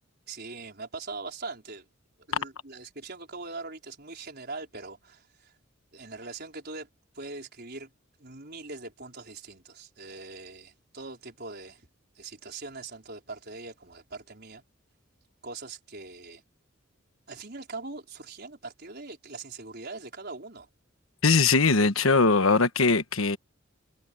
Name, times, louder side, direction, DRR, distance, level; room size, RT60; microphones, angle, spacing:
voice 1, 0.3-1.8 2.3-5.5 5.9-6.9 7.1-7.9 8.2-11.9 12.1-14.6 15.4-16.4 17.3-20.7, right 3 dB, 50° right, 4.9 m, -41 dB
voice 2, 21.2-23.4, left 4 dB, 90° left, 1.3 m, -21 dB
head